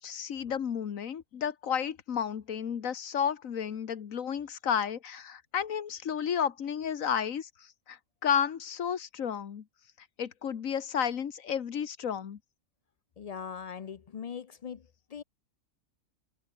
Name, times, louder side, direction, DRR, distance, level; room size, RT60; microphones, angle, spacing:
voice 1, 0.0-9.6 10.2-12.4, left 8 dB, 90° left, 1.6 m, -32 dB
voice 2, 13.2-14.8 15.1-15.2, left 7 dB, 50° left, 0.5 m, -40 dB
omnidirectional pair, 1.4 m